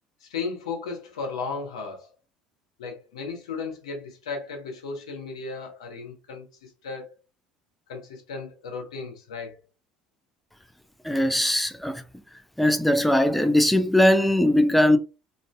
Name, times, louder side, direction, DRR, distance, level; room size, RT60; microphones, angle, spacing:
voice 1, 0.2-2.1 2.8-7.1 7.9-9.5, left 4 dB, 85° left, 0.9 m, -35 dB
voice 2, 11.0-12.0 12.6-15.0, left 1 dB, ahead, 0.5 m, -20 dB
2.6 x 2.6 x 2.2 m
hypercardioid pair, 70°, 3 cm